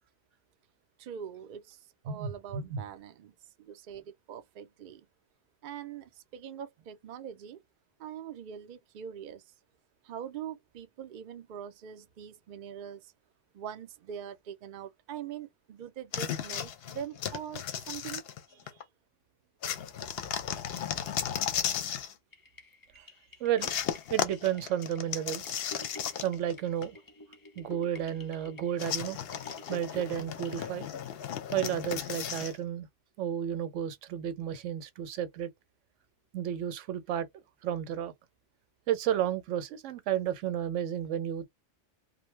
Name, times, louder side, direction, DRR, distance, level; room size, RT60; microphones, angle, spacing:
voice 1, 1.0-5.1 5.6-7.6 8.0-9.4 10.0-13.1 13.5-18.8, right 9 dB, 55° right, 0.6 m, -43 dB
voice 2, 2.1-2.8 22.9-23.1 23.4-23.7 24.1-25.6 26.2-27.0 27.6-29.2 29.7-30.9 31.5-32.9 33.2-35.5 36.3-37.3 37.6-38.1 38.9-41.4, right 10 dB, 80° right, 0.9 m, -32 dB
sound 1, 16.1-18.8 19.6-22.1 23.6-26.5 26.8-26.9 28.8-32.6, left 9 dB, 65° left, 0.7 m, -35 dB
sound 2, 22.3-30.7, left 2 dB, 30° left, 0.4 m, -50 dB
2.5 x 2.1 x 3.1 m
omnidirectional pair, 1.2 m